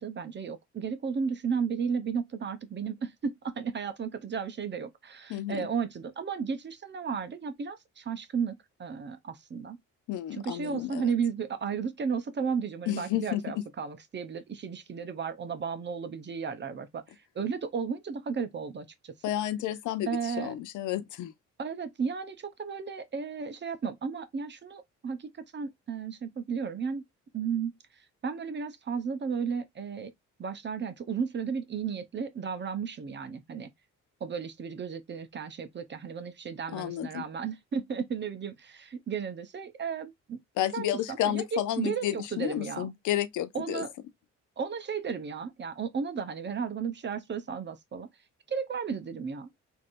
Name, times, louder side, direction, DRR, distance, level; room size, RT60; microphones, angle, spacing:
voice 1, 0.0-9.8 10.3-17.0 17.3-19.1 20.1-20.5 21.6-27.1 27.3-27.7 28.2-30.1 30.4-33.7 34.2-40.4 40.7-42.9 43.5-43.9 44.6-48.1 48.5-49.5, right 6 dB, 35° right, 0.8 m, -34 dB
voice 2, 5.3-5.7 10.1-11.1 12.9-13.4 19.2-21.3 36.7-37.3 40.6-43.8, left 12 dB, 80° left, 0.6 m, -31 dB
3.2 x 2.7 x 2.4 m
cardioid pair, 90°, 30 cm